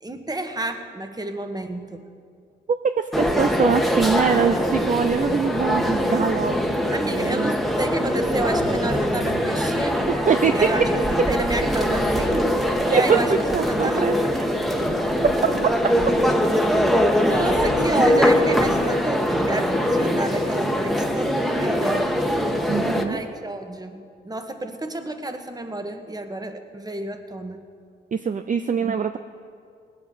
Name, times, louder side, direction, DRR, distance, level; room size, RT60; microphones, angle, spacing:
voice 1, 0.0-2.0 6.9-10.1 10.5-12.5 12.8-13.3 13.7-14.3 17.1-22.3 23.0-27.6, right 2 dB, 20° right, 6 dB, 1.4 m, -29 dB
voice 2, 3.0-6.6 7.3-7.5 10.1-10.5 12.9-14.5 22.7-23.2 28.1-29.2, right 6 dB, 40° right, 9 dB, 0.6 m, -23 dB
sound 1, 3.1-23.0, equal, ahead, 1.4 m, -22 dB
19.0 x 8.0 x 7.2 m, 2.2 s
cardioid pair, 75°, 19 cm